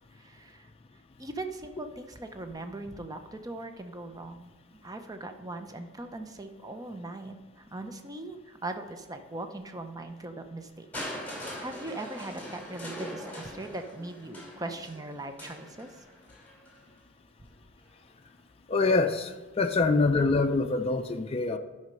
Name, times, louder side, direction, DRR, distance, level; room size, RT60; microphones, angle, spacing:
voice 1, 0.1-0.7 1.2-4.5 4.8-11.1 11.6-15.9, right 2 dB, 20° right, 7 dB, 0.6 m, -40 dB
Crushing, 10.9-16.8 17.8-17.9, equal, 10° left, 2.8 m, -42 dB
voice 2, 18.7-21.6, left 3 dB, 30° left, 5 dB, 0.4 m, -25 dB
11.0 x 5.6 x 5.2 m, 1.2 s
head